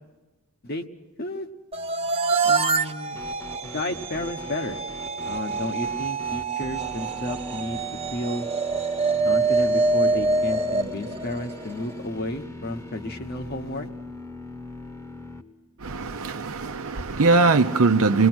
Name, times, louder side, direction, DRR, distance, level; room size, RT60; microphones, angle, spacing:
voice 1, 1.2-1.5 2.4-3.2 3.6-4.8 5.2-7.8 8.1-8.5 9.2-13.9, left 1 dB, 45° left, 1.2 m, -32 dB
sound 1, 1.7-11.9, right 3 dB, 25° right, 0.7 m, -26 dB
sound 2, 3.1-15.4, left 2 dB, 15° left, 1.1 m, -40 dB
voice 2, 15.8-18.3, right 3 dB, 80° right, 0.8 m, -21 dB
27.5 x 20.0 x 6.2 m
head